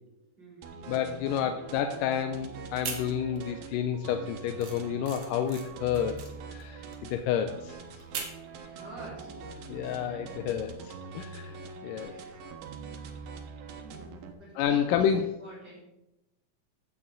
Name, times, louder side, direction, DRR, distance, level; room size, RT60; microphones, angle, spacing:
voice 1, 0.4-1.5 5.8-6.2 8.6-9.8 10.2-10.4 12.1-12.5 13.8-15.8, right 1 dB, 30° right, -7 dB, 4.2 m, -49 dB
sound 1, 0.6-14.3, right 5 dB, 85° right, 2.8 m, -44 dB
voice 2, 0.9-6.2 6.5-7.8 9.7-11.6 11.8-12.1 14.6-15.3, left 9 dB, 80° left, 7 dB, 2.1 m, -30 dB
sound 2, 2.7-3.6 3.9-8.5, right 6 dB, 55° right, 2.4 m, -41 dB
13.5 x 8.2 x 3.8 m, 0.91 s
omnidirectional pair, 4.1 m